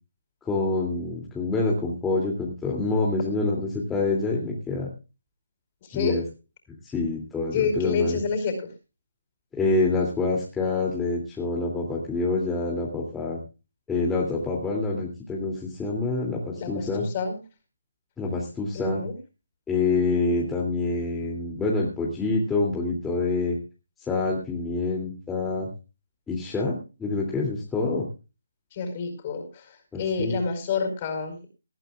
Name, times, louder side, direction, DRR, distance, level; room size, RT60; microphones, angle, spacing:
voice 1, 0.4-4.9 5.9-6.2 6.8-8.2 9.5-13.4 13.9-17.0 18.2-19.0 19.7-23.6 24.1-25.7 26.3-28.1 29.9-30.4, left 3 dB, 5° left, -3 dB, 2.8 m, -26 dB
voice 2, 5.9-6.2 7.5-8.5 16.5-17.4 18.7-19.1 28.7-31.5, left 5 dB, 30° left, 6 dB, 4.9 m, -28 dB
20.0 x 14.0 x 2.4 m, 0.31 s
figure-of-eight pair, 155°, 0 cm